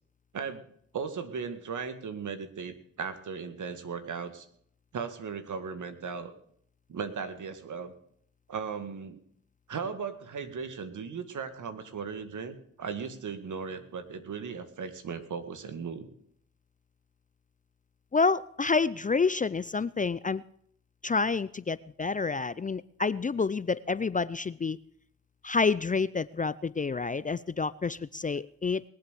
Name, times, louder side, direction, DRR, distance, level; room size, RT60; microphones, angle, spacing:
voice 1, 0.3-0.6 0.9-4.5 4.9-6.3 6.9-7.9 8.5-9.2 9.7-16.1, right 6 dB, 60° right, 10 dB, 2.0 m, -37 dB
voice 2, 18.1-20.4 21.0-24.8 25.4-28.8, left 4 dB, 25° left, 18 dB, 0.5 m, -28 dB
20.5 x 7.8 x 6.8 m, 0.66 s
supercardioid pair, 45°, 34 cm